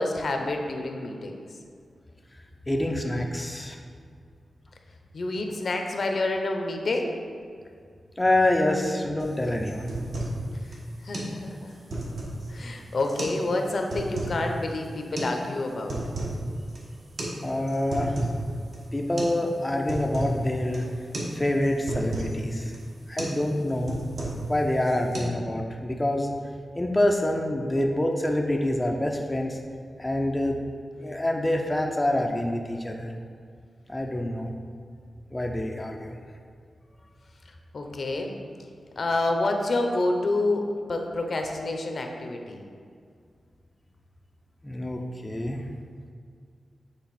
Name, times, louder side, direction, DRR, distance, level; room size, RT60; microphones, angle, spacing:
voice 1, 0.0-1.4 5.1-7.1 10.6-10.8 11.0-11.7 12.0-12.1 12.5-16.0 37.7-38.3 39.0-42.6, left 2 dB, 55° left, 3 dB, 0.6 m, -28 dB
voice 2, 2.7-3.8 8.2-9.9 17.4-18.2 18.9-20.8 21.3-22.7 23.1-24.0 24.5-26.4 26.8-29.6 30.0-30.6 31.0-33.1 33.9-34.5 35.3-36.2 44.6-45.6, left 1 dB, 15° left, 1 dB, 0.4 m, -26 dB
sound 1, 9.2-9.3 9.7-10.4 10.7-10.8 11.1-11.3 11.7-12.5 13.0-13.4 13.7-14.4 15.2-15.3 15.7-16.4 16.7-16.8 17.2-17.4 17.7-18.4 18.7-18.8 19.2-19.4 19.7-20.4 20.7-20.9 21.1-21.3 21.6-22.3 22.7-22.9 23.2-23.4 23.7-24.5 24.8-25.2, right 1 dB, 65° right, 1.3 m, -32 dB
7.9 x 3.4 x 4.1 m, 2.2 s
wide cardioid pair, 115°, 0 cm